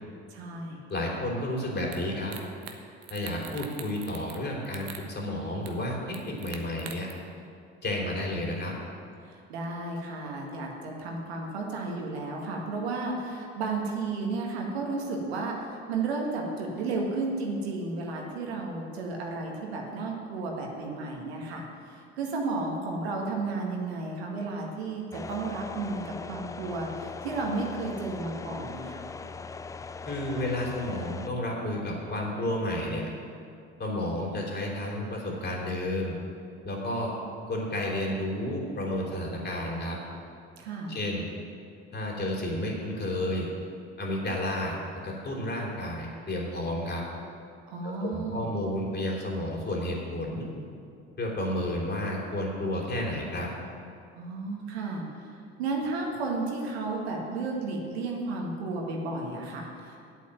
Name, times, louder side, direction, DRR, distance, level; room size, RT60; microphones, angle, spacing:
voice 1, 0.3-0.8 3.4-3.5 9.3-29.1 40.6-41.0 47.7-48.5 54.1-60.0, right 3 dB, 75° right, 0 dB, 1.9 m, -33 dB
voice 2, 0.9-2.3 3.1-7.1 7.8-8.7 30.0-33.1 33.8-36.2 36.6-37.1 37.5-40.0 40.9-41.3 41.9-43.5 44.0-44.8 45.0-47.0 47.8-50.5 51.2-53.5, left 1 dB, 30° left, -2 dB, 3.4 m, -31 dB
sound 1, 1.9-2.0 2.3-2.8 3.0-4.4 4.7-5.0 5.7-5.8 6.1-7.1, right 9 dB, 50° right, 1.3 m, -42 dB
sound 2, 25.1-31.3, left 4 dB, 10° left, 0.3 m, -40 dB
8.4 x 8.3 x 9.0 m, 2.4 s
figure-of-eight pair, 60°, 32 cm